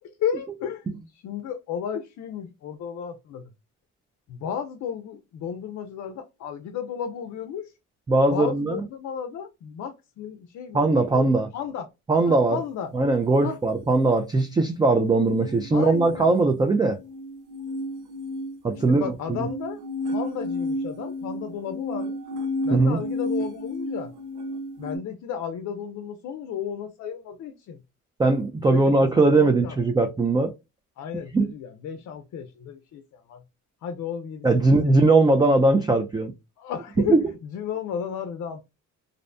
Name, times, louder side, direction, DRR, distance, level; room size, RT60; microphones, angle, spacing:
voice 1, 0.2-0.8 1.2-3.4 4.3-7.7 8.3-11.9 12.2-12.9 13.4-13.6 15.7-16.3 18.9-19.8 20.1-22.2 22.6-24.1 24.8-27.8 28.7-29.0 29.3-29.8 31.0-33.4 33.8-34.5 34.8-34.9 36.6-37.2 37.5-38.6, left 8 dB, 65° left, 0.5 m, -33 dB
voice 2, 8.1-8.8 10.7-11.5 12.1-12.6 12.9-17.0 18.6-19.5 22.7-23.0 28.2-30.5 31.3-31.5 34.4-36.3 37.0-37.2, right 2 dB, 15° right, 0.3 m, -20 dB
sound 1, 15.3-25.0, left 1 dB, 85° right, 0.7 m, -32 dB
2.6 x 2.1 x 2.5 m
cardioid pair, 90°, 30 cm